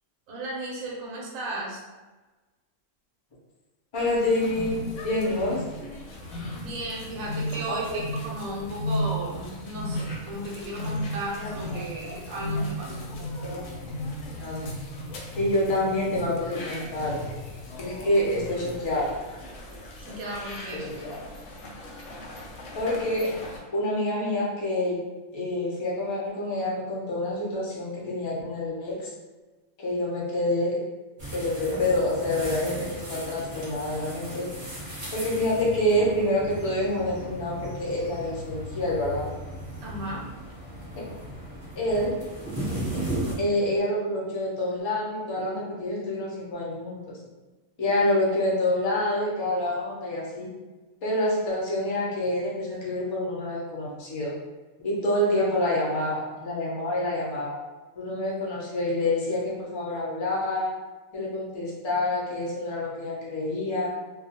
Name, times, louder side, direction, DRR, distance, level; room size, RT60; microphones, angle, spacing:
voice 1, 0.3-1.8 5.8-5.9 6.5-7.8 8.2-13.1 20.0-20.9 39.8-40.3 55.4-55.5, right 1 dB, 70° right, -3 dB, 1.0 m, -35 dB
sound 1, 3.9-23.6, left 1 dB, 70° left, 0.8 m, -36 dB
voice 2, 3.9-5.6 7.7-8.0 11.4-11.8 13.2-13.6 14.4-14.7 15.3-17.4 17.8-19.2 20.8-21.2 22.7-23.3 23.7-25.0 25.3-29.1 29.8-30.8 31.3-34.5 35.1-39.3 41.7-42.2 43.4-47.0 47.8-50.5 51.0-54.3 54.8-57.6 58.0-60.7 61.1-63.9, left 1 dB, 45° left, -5 dB, 0.3 m, -27 dB
sound 2, 31.2-43.3, right 1 dB, 20° right, 0.8 m, -36 dB
2.3 x 2.2 x 2.7 m, 1.2 s
omnidirectional pair, 1.5 m